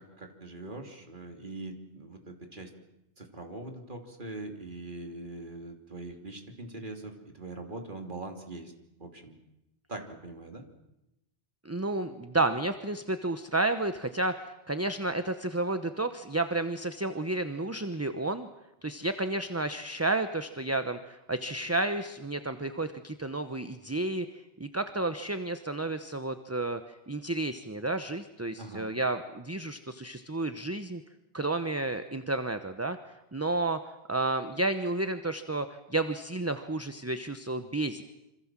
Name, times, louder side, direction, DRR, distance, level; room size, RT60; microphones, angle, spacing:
voice 1, 0.0-2.7 3.2-8.7 9.0-9.4 9.9-10.6 28.6-28.9, right 2 dB, 45° right, 4 dB, 3.1 m, -42 dB
voice 2, 11.6-18.5 18.8-24.3 24.6-26.8 27.1-31.0 31.3-33.0 33.3-38.0, right 2 dB, 15° right, 9 dB, 0.9 m, -31 dB
26.5 x 26.0 x 7.5 m, 0.91 s
omnidirectional pair, 1.1 m